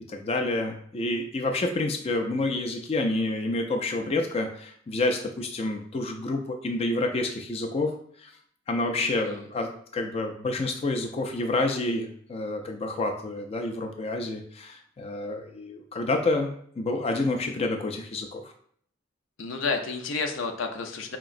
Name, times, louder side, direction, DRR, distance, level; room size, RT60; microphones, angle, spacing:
voice 1, 0.1-8.3 8.7-16.5 16.8-18.5, left 2 dB, 30° left, 4 dB, 0.4 m, -28 dB
voice 2, 9.0-9.4 19.4-21.2, left 4 dB, 85° left, 5 dB, 0.6 m, -31 dB
4.7 x 2.9 x 2.5 m, 0.63 s
head